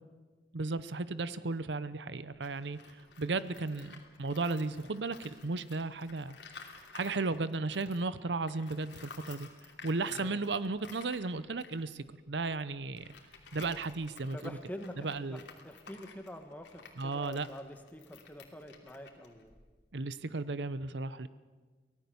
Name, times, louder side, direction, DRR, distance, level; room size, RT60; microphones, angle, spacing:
voice 1, 0.5-3.9 4.2-6.4 6.9-9.5 9.8-13.1 13.5-14.6 15.0-15.4 17.0-17.5 19.9-21.3, right 3 dB, 85° right, 15 dB, 0.8 m, -35 dB
Tools, 2.4-8.1 8.4-19.9, left 5 dB, 90° left, 2.9 m, -54 dB
voice 2, 10.1-10.4 14.3-19.5, equal, 10° left, 6 dB, 1.7 m, -46 dB
24.5 x 17.5 x 7.0 m, 1.4 s
head